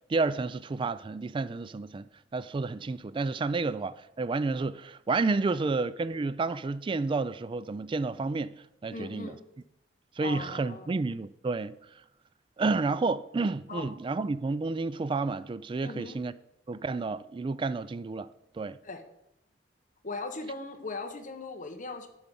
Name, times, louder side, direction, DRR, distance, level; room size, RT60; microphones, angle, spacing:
voice 1, 0.1-2.1 2.3-8.6 8.8-9.3 10.2-11.8 12.6-16.3 16.7-18.3 18.5-18.8, right 3 dB, 25° right, 0.3 m, -30 dB
voice 2, 8.9-9.4 10.2-11.0 13.7-13.9 15.8-16.2 18.8-19.0 20.0-22.1, left 3 dB, 45° left, 1.2 m, -39 dB
10.5 x 6.2 x 5.3 m
head